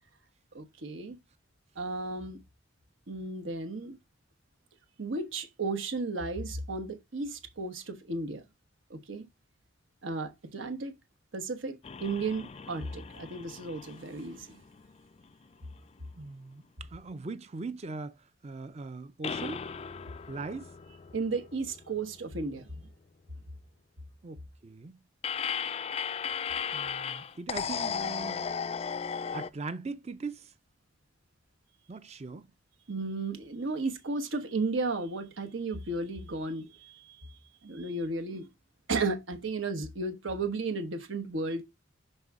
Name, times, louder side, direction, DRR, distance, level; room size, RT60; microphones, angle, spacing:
voice 1, 0.5-1.2 1.8-2.4 3.1-4.0 5.0-8.4 8.9-9.3 10.0-10.9 11.3-14.6 21.1-22.7 32.9-38.5 38.9-41.6, right 3 dB, 80° right, 1.1 m, -34 dB
sound 1, 11.8-15.3 15.7-15.8 19.2-22.4 25.2-29.5, left 6 dB, 30° left, 0.3 m, -36 dB
voice 2, 16.1-18.2 18.4-19.6 20.3-20.7 24.2-25.0 26.7-28.5 29.3-30.5 31.9-32.5, right 3 dB, 35° right, 0.5 m, -40 dB
5.6 x 5.4 x 3.6 m
head